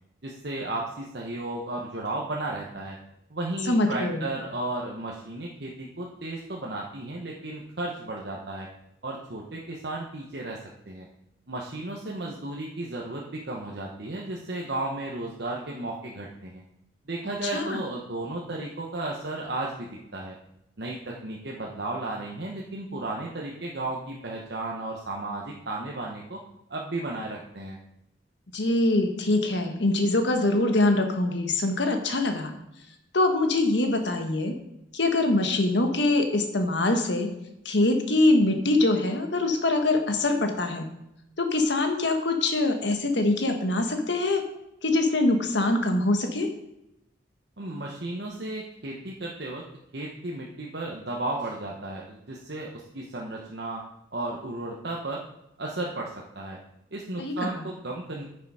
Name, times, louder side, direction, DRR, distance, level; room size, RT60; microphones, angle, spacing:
voice 1, 0.2-3.0 3.3-8.7 9.0-10.6 10.9-11.1 11.5-16.6 17.1-20.4 20.8-26.4 26.7-27.8 47.6-49.6 49.9-53.8 54.1-55.2 55.6-56.6 56.9-58.2, right 2 dB, 60° right, -2 dB, 1.1 m, -34 dB
voice 2, 3.7-4.2 17.5-17.8 28.5-32.5 33.1-34.5 34.9-37.3 37.6-40.9 41.4-44.4 44.8-46.5 57.2-57.7, left 2 dB, 70° left, 5 dB, 1.4 m, -24 dB
9.7 x 6.8 x 4.9 m, 0.86 s
head